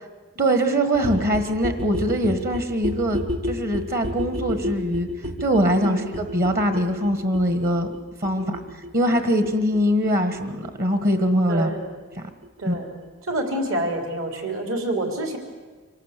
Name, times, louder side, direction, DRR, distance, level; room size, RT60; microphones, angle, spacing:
voice 1, 0.4-5.1 5.4-7.9 8.2-8.6 8.9-11.7 12.2-12.3 12.7-12.8, equal, 45° right, 9 dB, 1.5 m, -22 dB
sound 1, 0.9-12.5 12.7-12.8 13.0-13.1 13.3-13.4 13.6-13.7 13.9-14.0 14.2-14.3, equal, 85° right, 1.6 m, -32 dB
voice 2, 5.8-6.1 8.3-8.6 11.5-11.9 12.6-12.9 13.3-15.4, right 1 dB, 70° right, 4 dB, 3.5 m, -27 dB
25.5 x 18.0 x 8.3 m, 1.4 s
head